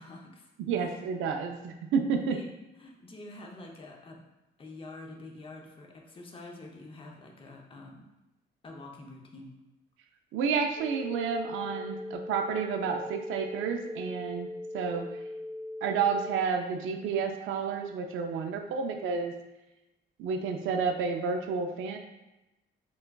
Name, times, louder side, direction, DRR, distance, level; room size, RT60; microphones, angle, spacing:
voice 1, 0.0-0.5 0.8-0.9 2.3-2.5 2.8-4.2 4.6-8.0 8.6-9.5, left 2 dB, 25° left, 0 dB, 0.6 m, -47 dB
voice 2, 0.6-2.4 10.3-15.2 15.8-19.3 20.2-22.0, right 6 dB, 85° right, 3 dB, 0.4 m, -30 dB
sound 1, 10.8-16.4, left 1 dB, 20° right, 0.8 m, -40 dB
4.5 x 2.3 x 2.2 m, 0.98 s
cardioid pair, 90°, 20 cm